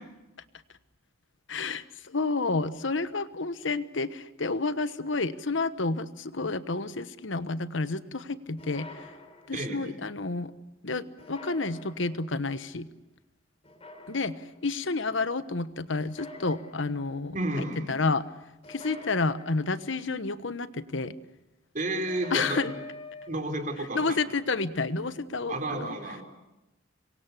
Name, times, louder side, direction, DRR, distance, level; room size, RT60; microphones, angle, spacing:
voice 1, 1.5-8.9 9.5-10.5 10.8-12.9 14.1-18.3 18.7-21.1 22.3-22.7 23.9-25.9, left 3 dB, 70° left, 13 dB, 1.2 m, -30 dB
sound 1, 8.6-9.8 11.2-12.3 13.6-14.6 16.0-17.2 18.6-20.0 22.1-23.3, left 2 dB, 30° left, 4.0 m, -46 dB
voice 2, 9.5-10.0 17.3-18.0 21.7-22.7 23.3-24.2 25.5-26.2, right 1 dB, 40° right, 4 dB, 4.0 m, -32 dB
26.5 x 23.5 x 8.4 m, 0.97 s
head